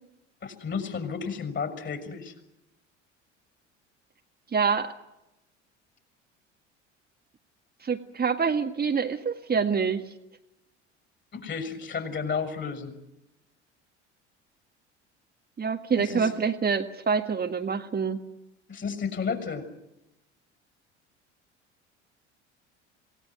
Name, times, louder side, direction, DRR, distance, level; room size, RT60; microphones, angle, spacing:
voice 1, 0.4-2.3 11.3-12.9 15.9-16.3 18.7-19.7, left 5 dB, 30° left, 9 dB, 6.4 m, -32 dB
voice 2, 4.5-4.9 7.8-10.1 15.6-18.2, right 5 dB, 25° right, 4 dB, 1.9 m, -26 dB
27.5 x 18.0 x 9.4 m, 0.91 s
figure-of-eight pair, 65°, 35 cm